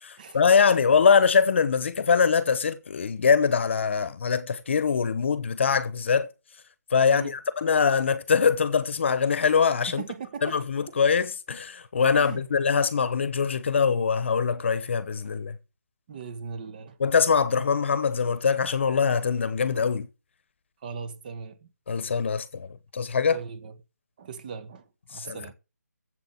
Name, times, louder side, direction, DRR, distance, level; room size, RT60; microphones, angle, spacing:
voice 1, 0.0-6.3 6.9-10.0 10.4-15.6 17.0-20.1 21.9-23.4 25.1-25.4, left 6 dB, 45° left, 1.1 m, -23 dB
voice 2, 7.0-7.4 9.9-10.6 12.1-12.4 16.1-17.0 20.8-21.7 23.3-23.7 24.2-25.5, right 6 dB, 30° right, 1.3 m, -39 dB
7.9 x 7.8 x 7.6 m
figure-of-eight pair, 155°, 9 cm